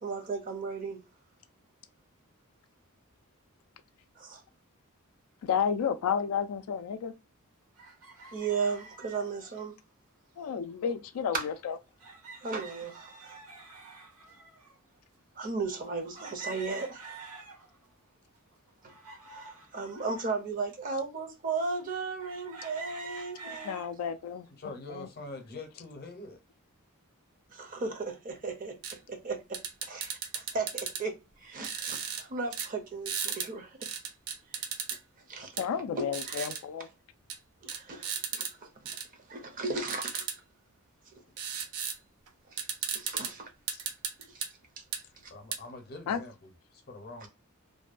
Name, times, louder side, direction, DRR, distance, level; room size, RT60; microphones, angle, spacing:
voice 1, 0.0-1.0 4.2-4.4 8.3-9.8 11.3-11.4 12.4-13.4 15.4-17.2 19.3-23.8 27.5-28.8 29.1-31.1 31.4-33.9 34.5-34.6 35.3-35.5 36.0-36.5 37.6-38.5 39.3-40.3 42.5-42.6 42.9-43.5 44.3-44.5 47.2-47.3, right 4 dB, 40° right, 0.5 m, -35 dB
voice 2, 5.4-7.1 10.4-11.8 23.6-25.1 35.6-36.9 43.7-43.8 46.1-46.2, left 7 dB, 75° left, 0.3 m, -32 dB
sound 1, 7.8-9.7 10.9-11.0 11.3-11.4 12.0-14.8 15.4-15.5 16.2-17.9 18.4-20.3 20.9-21.0 22.2-23.9 24.4-24.9, right 4 dB, 75° right, 0.9 m, -47 dB
voice 3, 24.6-26.4 45.3-47.3, left 2 dB, 45° left, 0.7 m, -44 dB
sound 2, 28.8-29.0 29.5-31.0 31.6-32.2 32.5-32.7 33.1-33.5 33.8-35.0 35.6-35.7 36.1-36.6 37.3-37.4 37.7-38.5 38.9-39.1 39.9-40.4 41.4-42.0 42.3-42.4 42.6-43.3 43.7-44.5 44.9-45.0 45.5-45.6, right 7 dB, 90° right, 0.5 m, -35 dB
2.6 x 2.2 x 2.4 m
head